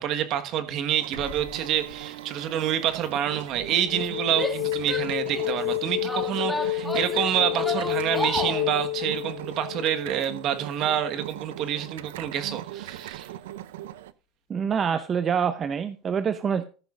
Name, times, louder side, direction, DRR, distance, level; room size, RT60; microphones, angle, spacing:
voice 1, 0.0-13.3, right 10 dB, 55° right, 1.4 m, -27 dB
sound 1, 1.0-14.1, right 13 dB, 90° right, 0.6 m, -40 dB
sound 2, 1.2-1.9 3.6-11.3, left 17 dB, 75° left, 1.0 m, -31 dB
Female speech woman speaking / Yell, 4.3-5.6 6.0-8.7, left 1 dB, 5° left, 1.6 m, -32 dB
voice 2, 14.5-16.6, right 7 dB, 30° right, 0.7 m, -26 dB
14.0 x 10.5 x 2.5 m
supercardioid pair, 110°, 0 cm